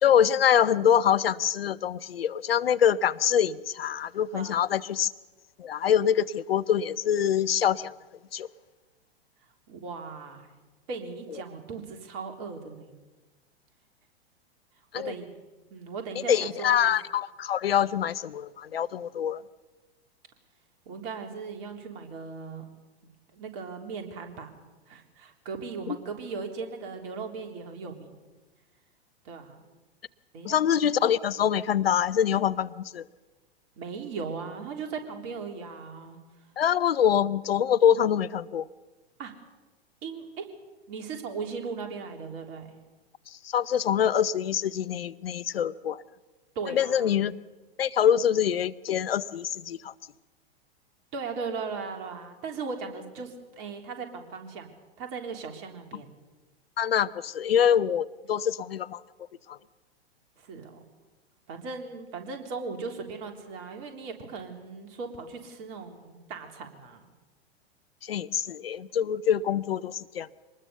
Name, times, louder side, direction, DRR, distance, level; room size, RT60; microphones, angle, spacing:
voice 1, 0.0-5.1 5.6-7.9 8.3-8.5 14.9-15.1 16.3-19.4 25.9-26.0 30.4-33.1 36.6-38.6 43.3-46.0 46.6-47.3 47.8-49.9 56.8-59.0 59.5-59.6 68.0-70.3, left 9 dB, 65° left, 17 dB, 0.7 m, -25 dB
voice 2, 9.7-10.5 10.9-12.9 14.9-15.3 15.7-16.9 20.9-22.6 23.3-24.5 24.9-28.1 29.3-29.6 30.3-30.6 33.8-36.2 39.2-39.3 40.0-40.5 40.9-42.7 46.6-47.2 51.1-56.1 60.4-60.8 61.5-67.1, right 5 dB, 40° right, 4 dB, 3.5 m, -38 dB
24.5 x 20.0 x 7.0 m, 1.2 s
figure-of-eight pair, 100°, 32 cm